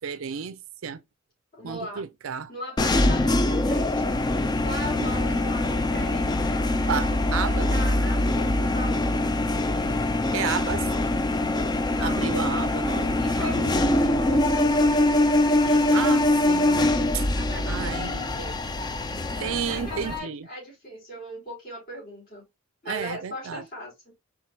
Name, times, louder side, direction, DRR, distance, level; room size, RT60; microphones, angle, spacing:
voice 1, 0.0-1.0 1.6-2.5 6.8-7.7 10.3-10.9 12.0-13.8 15.6-17.3 17.6-18.1 19.4-20.5 22.9-23.6, right 7 dB, 75° right, 0.5 m, -32 dB
voice 2, 1.5-2.0 2.5-4.1 4.6-9.4 11.9-12.3 13.1-15.0 17.3-18.6 19.7-22.4 22.8-24.1, equal, 45° left, 2.9 m, -38 dB
sound 1, 2.8-20.2, left 2 dB, 20° left, 0.3 m, -23 dB
4.4 x 3.6 x 2.3 m
head